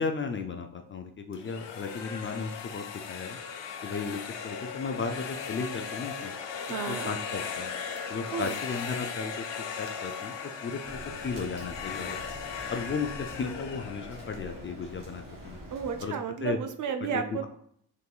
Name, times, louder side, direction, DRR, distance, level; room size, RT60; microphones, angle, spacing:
voice 1, 0.0-3.4 3.8-6.3 6.9-7.7 8.1-9.5 9.8-10.3 10.6-11.0 11.2-12.2 12.7-15.6 16.0-16.1 16.4-16.6 17.1-17.5, left 4 dB, 30° left, 5 dB, 0.3 m, -35 dB
sound 1, 1.3-15.2, left 6 dB, 70° left, 0.7 m, -38 dB
voice 2, 6.7-7.1 8.3-8.5 15.7-17.5, right 7 dB, 45° right, 7 dB, 0.4 m, -32 dB
Rain, 10.8-16.0, equal, 85° right, 1.3 m, -45 dB
3.8 x 2.6 x 2.3 m, 0.65 s
supercardioid pair, 60°, 45 cm